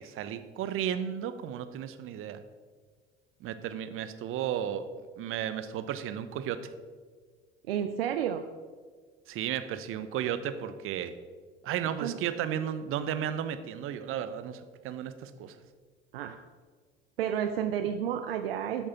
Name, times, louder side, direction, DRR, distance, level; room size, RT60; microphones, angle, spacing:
voice 1, 0.0-2.4 3.4-4.9 5.2-6.7 9.3-11.1 11.6-15.6, right 9 dB, 45° right, 12 dB, 0.8 m, -34 dB
voice 2, 7.7-8.4 12.0-12.2 16.1-16.4 17.2-18.9, right 9 dB, 70° right, 8 dB, 0.6 m, -31 dB
13.0 x 7.4 x 4.2 m, 1.5 s
figure-of-eight pair, 60°, 31 cm